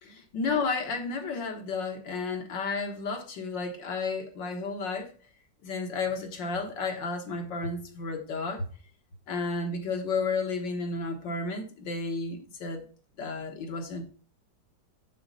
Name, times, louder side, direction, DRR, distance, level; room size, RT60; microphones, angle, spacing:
voice 1, 0.0-5.1 5.6-8.6 9.3-12.8 13.2-14.0, left 4 dB, 90° left, 2.2 m, -32 dB
6.8 x 6.6 x 4.0 m
omnidirectional pair, 1.9 m